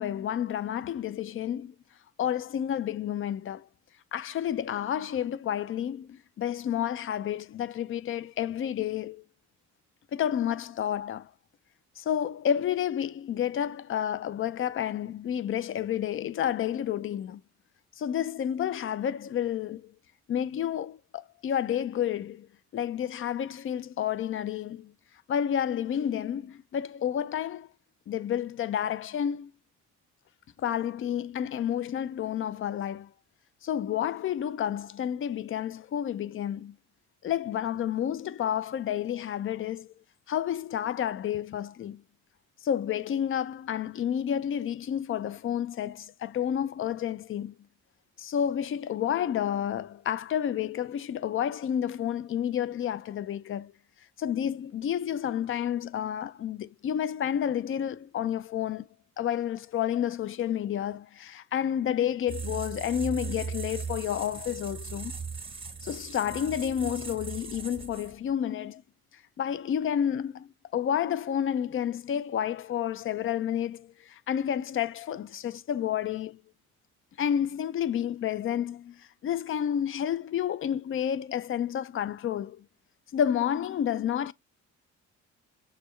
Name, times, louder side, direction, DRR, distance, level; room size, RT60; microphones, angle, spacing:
voice 1, 0.0-1.7 2.2-3.7 4.1-9.2 10.1-11.3 12.0-17.4 18.0-19.9 20.3-22.5 22.7-24.9 25.3-27.7 28.1-29.5 30.6-33.1 33.6-36.8 37.2-39.9 40.3-42.0 42.6-47.5 48.2-53.7 54.2-58.9 59.2-65.2 65.8-68.8 69.4-76.4 77.2-82.7 83.1-84.3, left 9 dB, 45° left, 0.4 m, -30 dB
sound 1, 62.3-68.3, right 5 dB, 15° right, 0.9 m, -38 dB
6.6 x 2.3 x 3.0 m
cardioid pair, 90°, 30 cm